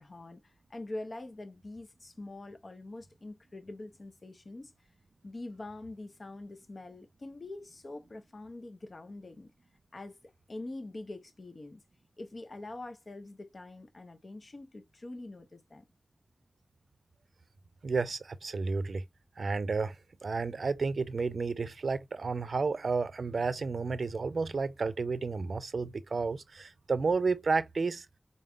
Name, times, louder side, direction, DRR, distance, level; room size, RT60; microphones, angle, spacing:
voice 1, 0.0-4.7 5.2-9.5 9.9-11.8 12.2-15.8, left 2 dB, 60° left, 1.0 m, -44 dB
voice 2, 17.8-19.0 19.4-20.0 20.2-28.1, right 4 dB, 90° right, 0.4 m, -31 dB
4.0 x 3.6 x 2.2 m
wide cardioid pair, 60°, 0 cm